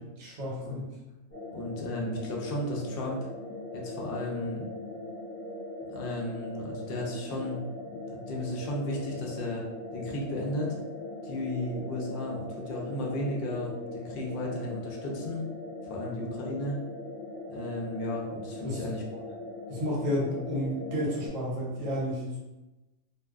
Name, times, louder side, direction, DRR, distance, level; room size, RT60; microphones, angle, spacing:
voice 1, 0.2-0.9 18.6-18.8 19.7-22.4, left 1 dB, 65° right, -4 dB, 1.1 m, -31 dB
sound 1, 1.3-21.3, left 2 dB, 15° left, 0.8 m, -40 dB
voice 2, 1.5-3.2 3.7-4.7 5.9-7.6 7.9-9.6 9.9-10.8 11.2-15.4 15.9-16.8 17.5-19.2, left 1 dB, 70° left, -2 dB, 0.5 m, -34 dB
2.5 x 2.1 x 2.3 m, 1.0 s
omnidirectional pair, 1.5 m